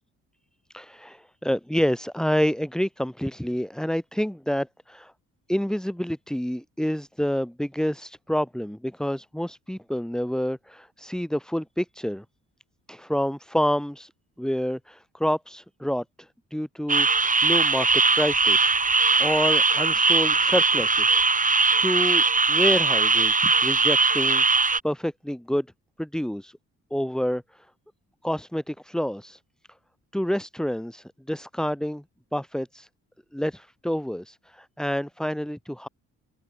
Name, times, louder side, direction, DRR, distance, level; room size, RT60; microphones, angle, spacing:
voice 1, 0.7-5.1 5.5-12.2 12.9-14.1 14.4-21.2 21.8-25.7 26.0-26.6 26.9-27.7 28.2-29.4 30.1-32.0 32.3-32.9 33.3-35.9, equal, ahead, 7.5 m, -28 dB
sound 1, 16.9-24.8, right 4 dB, 25° right, 6.2 m, -20 dB
open air
cardioid pair, 90°, 30 cm